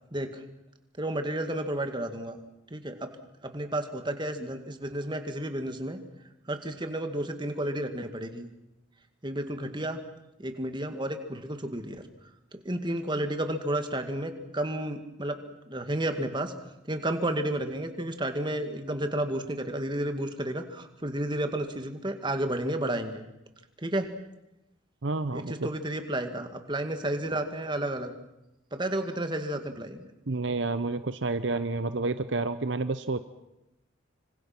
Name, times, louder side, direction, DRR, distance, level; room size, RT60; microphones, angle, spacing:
voice 1, 0.1-0.4 1.0-2.4 2.7-3.1 3.4-6.0 6.5-8.5 9.2-10.0 10.4-12.0 12.5-15.4 15.7-16.5 16.8-23.2 23.8-24.1 25.3-28.1 28.7-30.1, right 1 dB, 25° right, 7 dB, 2.1 m, -31 dB
voice 2, 25.0-25.7 30.3-33.2, right 3 dB, 65° right, 12 dB, 0.8 m, -29 dB
26.0 x 25.5 x 6.1 m, 0.90 s
head